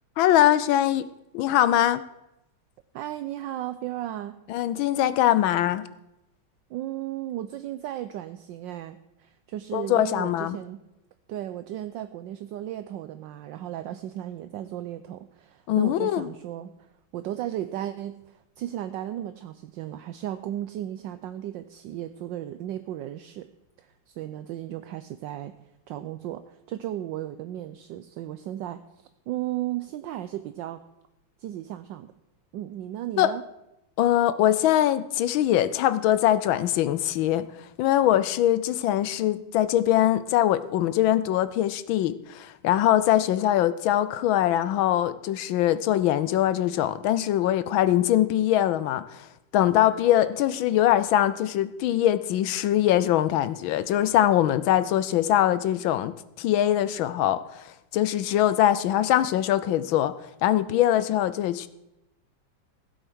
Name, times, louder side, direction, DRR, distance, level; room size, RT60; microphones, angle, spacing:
voice 1, 0.2-1.1 1.3-2.0 4.5-5.9 9.7-10.6 15.7-16.3 33.2-33.3 34.0-37.5 37.8-49.3 49.5-60.1 60.4-61.7, left 12 dB, 75° left, 15 dB, 1.3 m, -22 dB
voice 2, 2.9-4.4 6.7-10.8 11.3-23.5 23.8-25.5 25.9-30.8 31.4-32.1 32.5-33.4, right 12 dB, 75° right, 11 dB, 1.1 m, -35 dB
15.5 x 8.0 x 6.2 m, 0.90 s
omnidirectional pair, 2.4 m